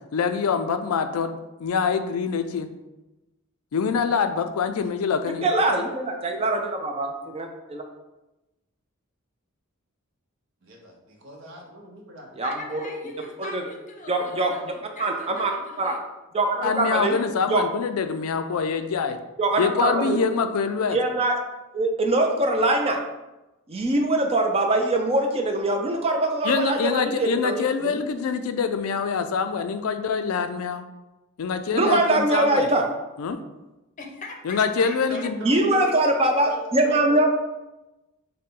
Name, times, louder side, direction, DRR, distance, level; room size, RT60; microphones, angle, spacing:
voice 1, 0.1-1.3 1.6-2.7 3.7-5.5 16.6-19.2 19.6-21.0 26.4-30.8 31.4-32.7 33.2-33.4 34.4-35.4, left 5 dB, 80° left, 8 dB, 0.4 m, -25 dB
voice 2, 5.4-7.8 12.4-12.9 13.4-13.6 14.1-14.7 15.0-15.5 15.8-15.9 16.3-17.2 17.5-17.6 19.4-20.2 20.9-21.4 21.7-23.0 23.7-28.0 31.7-32.8 35.4-37.3, right 2 dB, 25° right, 3 dB, 0.5 m, -23 dB
voice 3, 10.6-12.3 35.1-36.0 36.4-37.2, equal, 60° right, 0 dB, 0.9 m, -40 dB
voice 4, 12.4-16.0 34.0-35.9, left 3 dB, 35° left, 2 dB, 0.6 m, -41 dB
6.4 x 2.2 x 3.7 m, 1.0 s
head